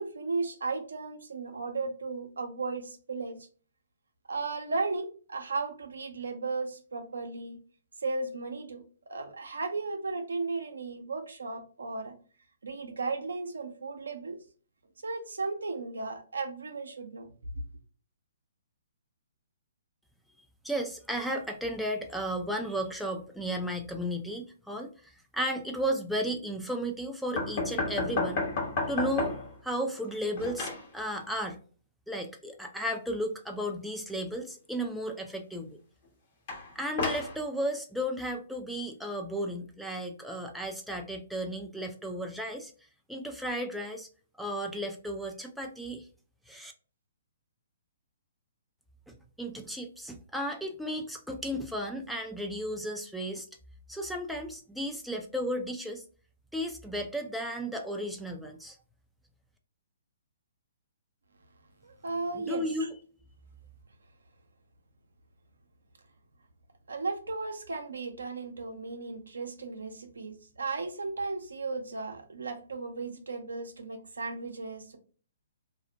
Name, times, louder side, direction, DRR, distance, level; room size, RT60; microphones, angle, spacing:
voice 1, 0.0-3.4 4.3-7.6 8.0-12.1 12.6-14.4 15.0-17.3 61.8-62.6 66.9-75.0, right 3 dB, 80° right, 5 dB, 0.6 m, -35 dB
voice 2, 20.6-28.4 28.9-29.4 29.6-31.6 32.1-35.8 36.8-42.7 43.1-44.1 44.4-46.1 46.5-46.7 49.1-53.5 53.9-56.0 56.5-58.8 62.3-62.9, equal, ahead, 1 dB, 0.4 m, -34 dB
sound 1, 27.4-29.6 29.9-30.9 36.5-37.4, left 3 dB, 45° left, 0.9 m, -32 dB
2.5 x 2.0 x 2.7 m, 0.39 s
figure-of-eight pair, 130°, 0 cm